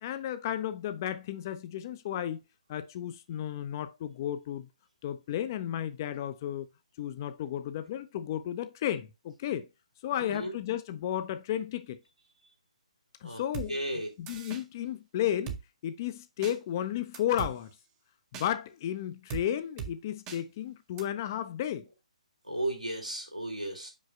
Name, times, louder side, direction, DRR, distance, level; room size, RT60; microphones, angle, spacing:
voice 1, 0.0-2.4 2.7-4.7 5.0-6.7 7.0-9.7 10.0-12.0 13.2-13.8 14.2-15.6 15.8-17.7 18.3-21.9, left 11 dB, 30° left, 0.5 m, -33 dB
voice 2, 10.2-10.5 13.2-13.4 13.7-14.1 22.4-23.9, right 1 dB, 85° right, 2.5 m, -34 dB
Drum kit, 13.5-13.7 14.3-14.6 15.5-15.6 16.4-16.6 17.1-17.5 18.3-18.5 19.3-19.5 19.8-19.9 20.3-20.4 21.0-21.1, right 7 dB, 15° right, 0.7 m, -38 dB
5.5 x 5.2 x 3.4 m
figure-of-eight pair, 135°, 4 cm